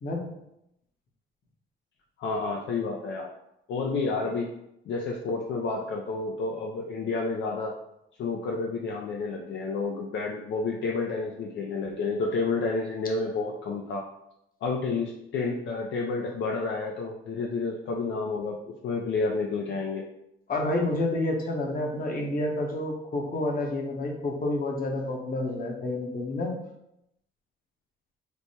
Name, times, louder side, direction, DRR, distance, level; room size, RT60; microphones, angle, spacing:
voice 1, 2.2-3.3 3.7-4.5 4.9-7.7 8.2-14.0 14.6-20.1, left 4 dB, 65° left, 0 dB, 0.5 m, -30 dB
voice 2, 20.5-26.5, left 2 dB, 45° left, 1 dB, 0.9 m, -29 dB
3.3 x 2.1 x 4.2 m, 0.82 s
cardioid pair, 90°, 20 cm